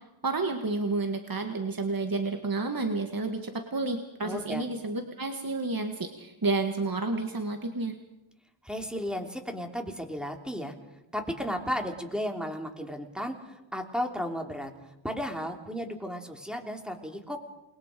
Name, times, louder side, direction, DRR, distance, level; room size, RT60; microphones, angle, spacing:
voice 1, 0.2-8.0, right 3 dB, 45° right, 5 dB, 1.8 m, -30 dB
voice 2, 4.2-4.6 8.6-10.7 11.1-14.7 15.0-17.4, equal, ahead, 3 dB, 3.2 m, -34 dB
28.5 x 21.5 x 5.2 m, 0.92 s
wide cardioid pair, 60°, 49 cm